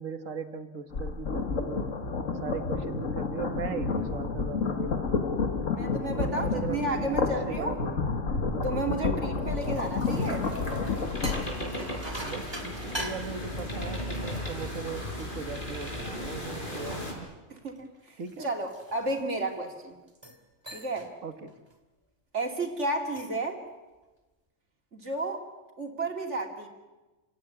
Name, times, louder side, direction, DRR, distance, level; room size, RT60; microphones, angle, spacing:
voice 1, 0.0-1.9 2.3-5.2 6.1-8.1 12.1-17.3 18.2-18.5 21.2-21.5, right 5 dB, 80° right, 9 dB, 1.9 m, -38 dB
sound 1, 0.9-11.4, left 4 dB, 80° left, 2.3 m, -30 dB
voice 2, 5.7-7.8 8.6-10.4 17.5-20.0 20.7-21.1 22.3-23.6 24.9-25.4 25.8-26.7, right 2 dB, 65° right, 3 dB, 3.1 m, -32 dB
sound 2, 9.3-16.1 16.6-19.6 20.1-20.4 20.7-21.1 21.5-21.8 22.9-23.5, right 1 dB, 20° right, 2.6 m, -44 dB
sound 3, 10.1-17.1, left 1 dB, 40° left, 5.4 m, -36 dB
29.5 x 17.0 x 9.8 m, 1.2 s
omnidirectional pair, 1.3 m